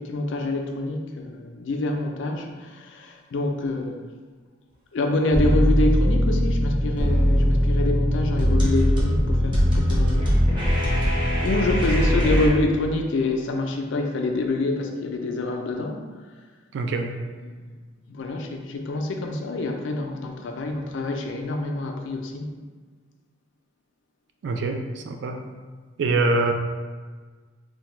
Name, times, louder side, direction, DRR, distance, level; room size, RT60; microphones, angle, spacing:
voice 1, 0.0-4.0 4.9-10.4 11.4-16.0 17.4-17.7 18.1-22.5, left 2 dB, 70° left, 3 dB, 0.4 m, -26 dB
sound 1, 5.3-12.5, equal, 25° right, 0.6 m, -20 dB
voice 2, 16.7-17.2 24.4-25.5 26.0-26.5, right 3 dB, 60° right, 5 dB, 0.3 m, -24 dB
3.4 x 2.1 x 3.0 m, 1.4 s
head